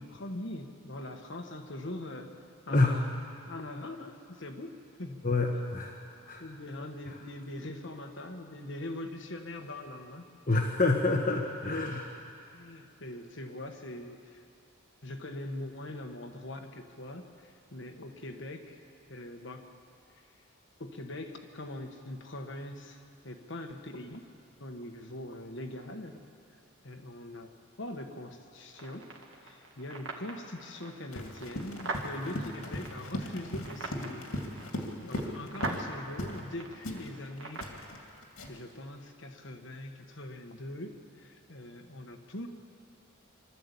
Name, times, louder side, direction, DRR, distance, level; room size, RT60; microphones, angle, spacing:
voice 1, 0.0-2.3 2.7-3.1 3.5-5.2 5.5-5.6 6.4-10.2 11.9-12.2 12.5-14.4 15.0-18.8 19.1-19.6 20.1-20.3 20.8-24.2 24.6-26.2 26.8-27.5 27.8-29.1 29.4-34.3 35.0-37.6 38.5-42.5, left 1 dB, 60° left, 4 dB, 1.4 m, -42 dB
voice 2, 2.7-3.0 5.2-6.0 6.3-6.4 10.5-12.1, left 2 dB, 40° left, 1 dB, 1.2 m, -27 dB
sound 1, 28.7-37.8, right 2 dB, 60° right, 2.0 m, -43 dB
Run, 31.1-35.9 36.2-36.5 36.8-38.7, left 1 dB, 85° left, 2.3 m, -38 dB
24.0 x 13.0 x 8.4 m, 2.5 s
head